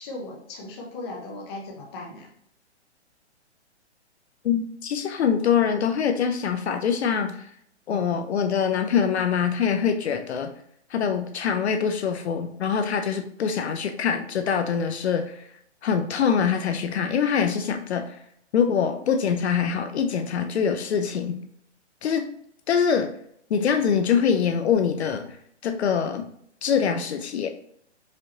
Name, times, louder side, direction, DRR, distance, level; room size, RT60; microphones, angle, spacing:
voice 1, 0.0-2.3, left 2 dB, 20° left, -2 dB, 0.7 m, -37 dB
voice 2, 4.4-7.5 7.9-10.5 10.9-15.4 15.8-18.2 18.5-21.4 22.0-22.2 22.7-23.1 23.5-25.4 25.6-26.3 26.6-27.5, left 7 dB, 65° left, 7 dB, 0.6 m, -24 dB
4.9 x 2.9 x 2.9 m, 0.69 s
hypercardioid pair, 160°, 35 cm